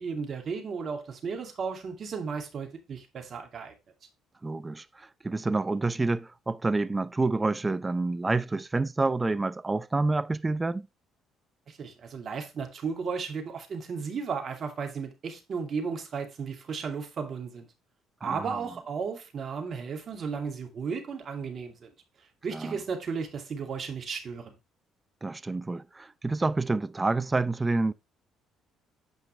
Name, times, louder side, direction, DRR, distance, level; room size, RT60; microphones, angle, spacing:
voice 1, 0.0-3.7 11.7-17.7 18.2-21.9 22.4-24.5, right 5 dB, 50° right, 2.4 m, -34 dB
voice 2, 4.4-10.9 18.2-18.5 22.5-22.8 25.2-27.9, right 3 dB, 20° right, 0.6 m, -28 dB
9.0 x 5.3 x 3.2 m
hypercardioid pair, 55°, 0 cm